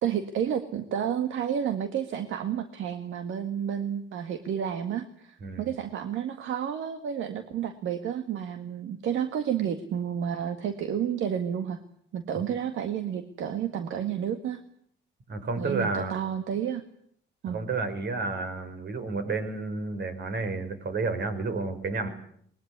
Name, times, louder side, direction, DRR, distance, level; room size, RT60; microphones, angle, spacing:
voice 1, 0.0-11.8 12.1-14.6 15.6-16.8 17.4-17.6, right 8 dB, 80° right, 8 dB, 1.9 m, -31 dB
voice 2, 5.4-5.7 15.3-16.2 17.5-22.1, right 3 dB, 60° right, 9 dB, 5.4 m, -31 dB
22.0 x 20.5 x 9.7 m, 0.66 s
cardioid pair, 90°, 20 cm